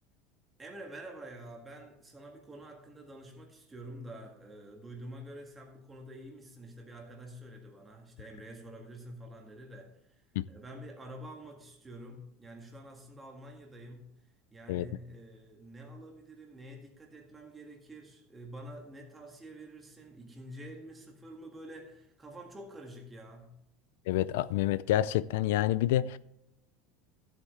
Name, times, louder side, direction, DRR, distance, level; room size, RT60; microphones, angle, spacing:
voice 1, 0.6-10.2 10.5-14.2 14.5-23.6, right 1 dB, 10° right, 1.8 m, -48 dB
voice 2, 24.1-26.2, left 13 dB, 85° left, 0.3 m, -28 dB
14.0 x 8.2 x 3.2 m
cardioid pair, 170°, 0 cm